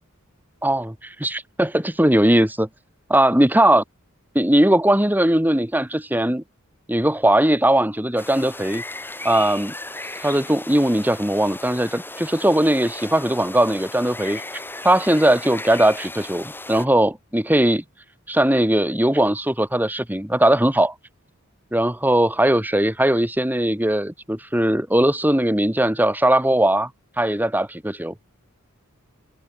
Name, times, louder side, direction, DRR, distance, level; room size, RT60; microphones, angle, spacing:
voice 1, 0.6-2.7 3.1-3.8 4.3-6.4 6.9-8.8 9.2-9.7 10.2-14.4 14.8-17.8 18.3-20.9 21.7-26.9 27.2-28.1, right 1 dB, 10° right, 2.3 m, -19 dB
sound 1, 8.2-16.8, left 2 dB, 10° left, 7.2 m, -36 dB
head